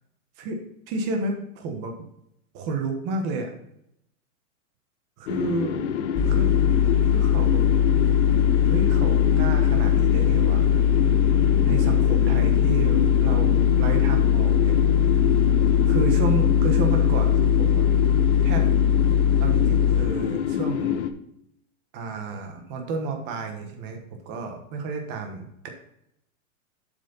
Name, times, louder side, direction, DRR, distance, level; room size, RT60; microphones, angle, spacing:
voice 1, 0.9-1.9 2.5-3.5 5.2-5.8 6.3-6.6 7.1-7.6 8.7-10.6 11.3-11.4 11.7-14.8 15.9-17.8 18.4-18.7 19.4-21.1 21.9-24.0 24.2-25.7, right 3 dB, 25° right, 4 dB, 1.2 m, -31 dB
sound 1, 5.3-21.1, left 9 dB, 55° left, 0.8 m, -27 dB
sound 2, 6.1-20.0, left 8 dB, 20° left, 0.7 m, -20 dB
7.6 x 6.4 x 4.0 m, 0.77 s
supercardioid pair, 165°, 43 cm